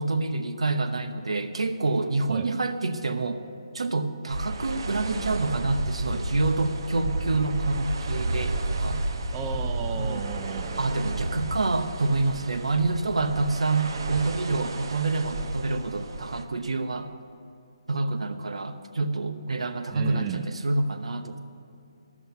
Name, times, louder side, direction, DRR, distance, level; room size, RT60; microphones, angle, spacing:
voice 1, 0.0-3.4 3.7-9.0 10.0-10.3 10.8-17.1 17.9-21.4, right 3 dB, 85° right, 8 dB, 0.9 m, -27 dB
sound 1, 4.3-16.4, right 2 dB, 50° right, 0.9 m, -32 dB
voice 2, 9.3-10.9 19.9-20.5, right 7 dB, 15° right, 6 dB, 0.4 m, -34 dB
13.5 x 6.2 x 8.2 m, 2.5 s
hypercardioid pair, 165°, 3 cm